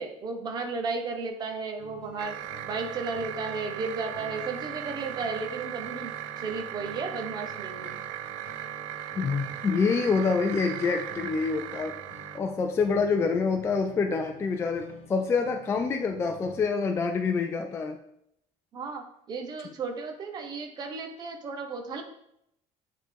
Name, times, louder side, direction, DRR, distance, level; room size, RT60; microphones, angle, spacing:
voice 1, 0.0-2.4 2.7-8.0 18.7-22.0, right 4 dB, 30° right, 4 dB, 0.9 m, -34 dB
sound 1, 1.8-16.6, left 5 dB, 70° left, 1.2 m, -50 dB
sound 2, 2.2-12.4, right 13 dB, 80° right, 0.4 m, -38 dB
voice 2, 9.2-12.0 12.3-18.0, left 4 dB, 20° left, 4 dB, 0.3 m, -26 dB
8.7 x 3.7 x 3.5 m, 0.75 s
cardioid pair, 170°, 14 cm